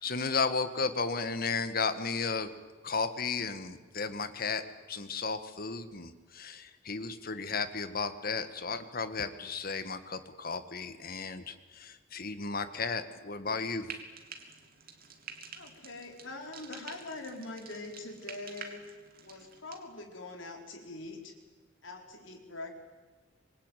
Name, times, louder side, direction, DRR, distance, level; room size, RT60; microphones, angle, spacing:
voice 1, 0.0-2.5 2.8-4.6 4.9-13.9, left 4 dB, 50° left, 11 dB, 1.8 m, -34 dB
Frying (food), 13.8-19.8, right 6 dB, 50° right, 3.0 m, -48 dB
voice 2, 15.5-18.8 19.2-21.3 21.8-22.7, left 2 dB, 90° left, 3 dB, 4.6 m, -43 dB
26.0 x 22.0 x 9.3 m, 1.3 s
head